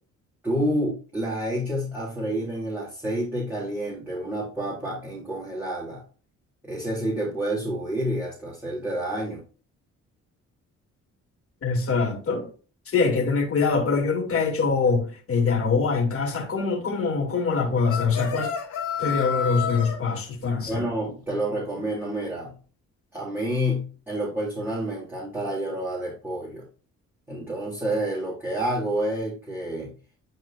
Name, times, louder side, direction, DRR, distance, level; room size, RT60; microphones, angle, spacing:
voice 1, 0.4-6.0 6.6-9.4 20.5-22.6 23.1-26.6 27.3-29.9, right 1 dB, 5° right, 3.2 m, -29 dB
voice 2, 11.6-12.5 12.9-18.5 19.0-20.9, left 4 dB, 50° left, 3.0 m, -24 dB
sound 1, 17.9-20.0, left 7 dB, 85° left, 2.0 m, -29 dB
11.5 x 4.2 x 2.7 m
cardioid pair, 90°, 30 cm